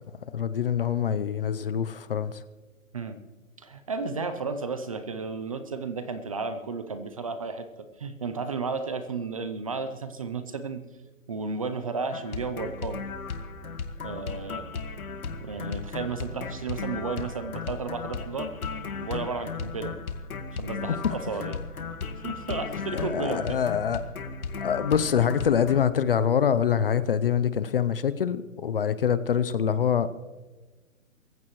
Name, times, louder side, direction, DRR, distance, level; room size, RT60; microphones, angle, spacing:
voice 1, 0.3-2.3 22.9-24.0 24.6-30.1, left 8 dB, 40° left, 14 dB, 0.7 m, -25 dB
voice 2, 3.6-7.7 8.0-10.8 11.3-13.0 14.0-14.7 15.4-18.5 19.0-19.9 20.5-21.6 22.2-23.6, right 4 dB, 25° right, 10 dB, 0.6 m, -33 dB
sound 1, 12.1-25.8, left 5 dB, 90° left, 1.8 m, -35 dB
26.0 x 15.0 x 3.1 m, 1.2 s
hypercardioid pair, 160°, 42 cm